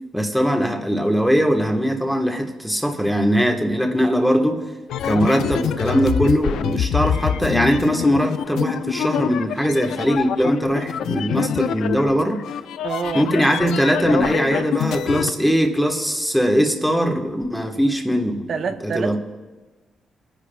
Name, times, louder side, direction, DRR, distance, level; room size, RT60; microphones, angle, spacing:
voice 1, 0.1-4.6 5.0-12.4 13.1-18.4 18.8-19.2, equal, ahead, 2 dB, 1.2 m, -20 dB
sound 1, 4.9-15.3, left 9 dB, 90° left, 0.4 m, -25 dB
voice 2, 12.8-13.3 18.5-19.2, right 5 dB, 60° right, 7 dB, 0.6 m, -26 dB
25.5 x 10.0 x 2.2 m, 1.2 s
cardioid pair, 95°, 0 cm